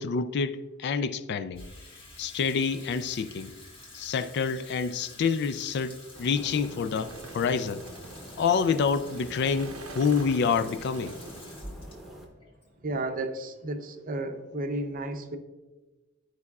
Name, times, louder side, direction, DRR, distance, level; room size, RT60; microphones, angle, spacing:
voice 1, 0.0-1.6 2.2-3.5 3.9-7.8 8.4-11.2, left 5 dB, 55° left, 0.3 m, -27 dB
Water tap faucet / Sink (filling or washing), 1.5-13.9, left 2 dB, 25° left, 1.3 m, -49 dB
sound 1, 6.1-12.3, equal, ahead, 0.9 m, -46 dB
sound 2, 6.3-11.7, right 3 dB, 80° right, 0.7 m, -47 dB
voice 2, 12.8-15.4, right 2 dB, 40° right, 0.6 m, -33 dB
12.0 x 4.7 x 2.3 m
head